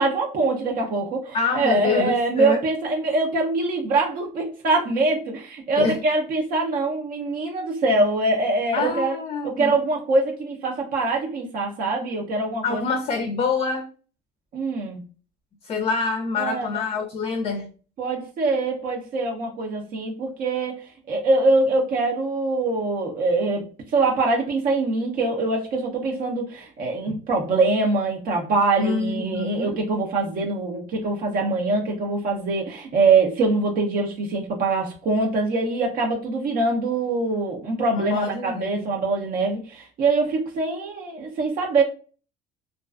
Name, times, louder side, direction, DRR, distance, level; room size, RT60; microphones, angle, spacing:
voice 1, 0.0-9.2 9.4-12.8 14.5-15.0 16.4-16.8 18.0-41.8, right 3 dB, 50° right, 0 dB, 0.6 m, -23 dB
voice 2, 1.3-2.6 5.8-6.0 8.7-9.7 12.6-13.9 15.6-17.7 27.1-27.2 28.8-29.8 37.9-38.9, left 4 dB, 35° left, 5 dB, 0.4 m, -26 dB
2.3 x 2.2 x 2.3 m, 0.37 s
cardioid pair, 110°, 18 cm